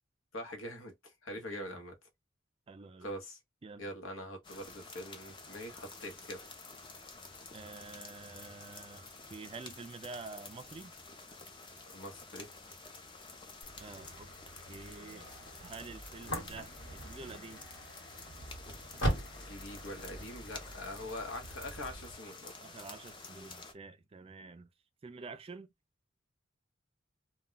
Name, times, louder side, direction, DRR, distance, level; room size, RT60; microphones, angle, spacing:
voice 1, 0.3-0.9 1.2-1.9 3.0-3.4 3.8-6.5 11.9-12.5 19.5-22.5, left 1 dB, 85° left, 0.9 m, -43 dB
voice 2, 1.4-1.8 2.7-3.1 3.6-3.8 7.5-10.9 13.8-14.3 14.7-15.3 15.6-17.7 22.6-24.7 25.0-25.7, right 4 dB, 30° right, 0.3 m, -48 dB
sound 1, 4.4-23.7, left 3 dB, 25° left, 0.5 m, -50 dB
sound 2, 13.6-22.2, right 1 dB, 65° left, 1.3 m, -41 dB
2.2 x 2.2 x 3.7 m
head